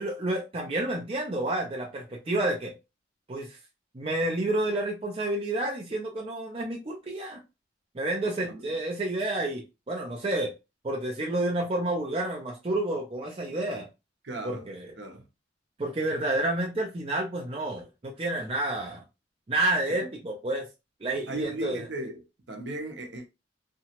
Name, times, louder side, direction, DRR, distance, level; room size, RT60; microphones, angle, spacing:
voice 1, 0.0-2.8 3.3-3.6 3.9-7.4 7.9-10.5 10.8-13.9 14.4-14.9 15.8-19.0 19.5-20.7 21.0-21.8, right 1 dB, 30° right, 0.5 m, -30 dB
voice 2, 8.2-8.7 14.2-14.7 15.0-15.2 19.9-20.1 21.3-22.2 22.5-23.2, right 2 dB, 65° right, 0.7 m, -37 dB
2.8 x 2.2 x 2.8 m
head